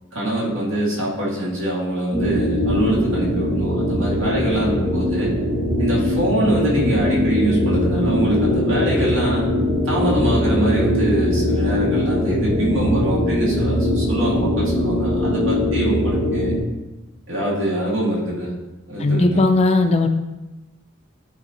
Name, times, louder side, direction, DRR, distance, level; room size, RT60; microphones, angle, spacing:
voice 1, 0.1-5.3 5.8-9.5 9.8-16.6 17.3-18.5 18.9-19.4, right 1 dB, 70° right, -5 dB, 2.1 m, -24 dB
sound 1, 2.1-16.6, left 1 dB, 35° right, 1.9 m, -21 dB
voice 2, 19.0-20.1, left 2 dB, 30° left, 6 dB, 0.4 m, -17 dB
10.5 x 4.2 x 2.9 m, 1.0 s
head